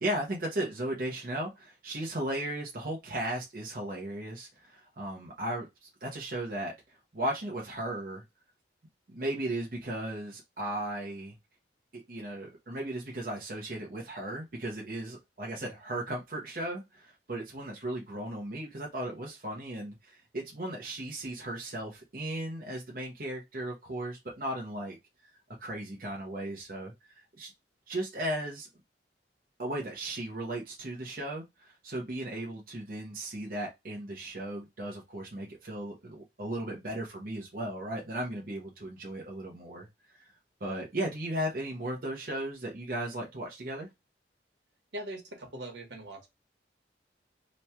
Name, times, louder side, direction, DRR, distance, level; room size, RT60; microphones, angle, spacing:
voice 1, 0.0-8.2 9.1-11.3 11.9-25.0 25.6-26.9 27.4-27.5 27.9-28.7 29.6-40.3 40.6-43.9, right 1 dB, 50° right, 0.8 m, -36 dB
voice 2, 44.9-46.3, right 1 dB, 80° right, 1.3 m, -41 dB
3.1 x 2.3 x 4.2 m
head